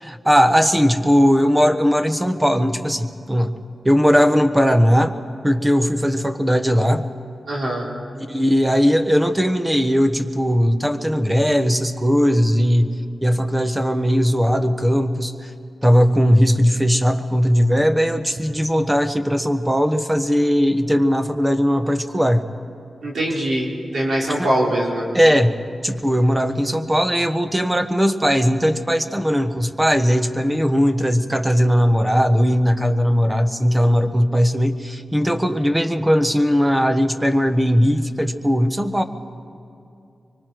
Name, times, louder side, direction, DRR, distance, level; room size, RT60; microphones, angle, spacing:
voice 1, 0.0-3.6 3.8-5.1 5.4-7.0 8.3-15.3 15.8-22.4 25.1-25.5 25.8-39.0, equal, 10° right, 8 dB, 1.1 m, -18 dB
voice 2, 7.5-7.9 23.0-25.1, right 1 dB, 70° right, -3 dB, 3.8 m, -22 dB
24.5 x 24.0 x 4.6 m, 2.7 s
wide cardioid pair, 110°, 0 cm